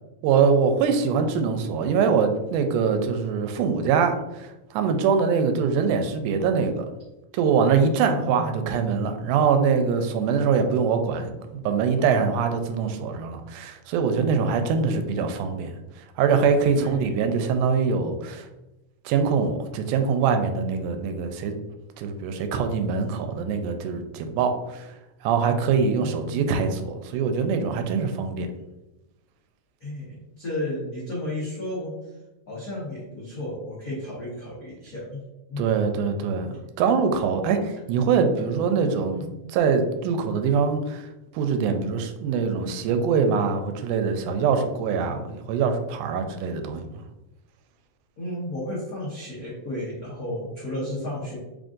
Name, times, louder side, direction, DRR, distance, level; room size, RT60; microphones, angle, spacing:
voice 1, 0.2-6.9 7.3-15.7 16.2-18.5 19.1-21.6 22.0-24.9 25.2-28.5 35.6-39.2 39.5-41.1 41.3-47.0, right 6 dB, 90° right, 7 dB, 2.1 m, -23 dB
voice 2, 8.0-8.7 16.7-17.3 26.0-26.5 29.8-32.1 32.5-35.2 35.5-35.6 39.1-39.2 48.2-51.4, left 1 dB, 75° left, -8 dB, 0.8 m, -33 dB
4.8 x 2.6 x 3.7 m, 0.99 s
omnidirectional pair, 3.5 m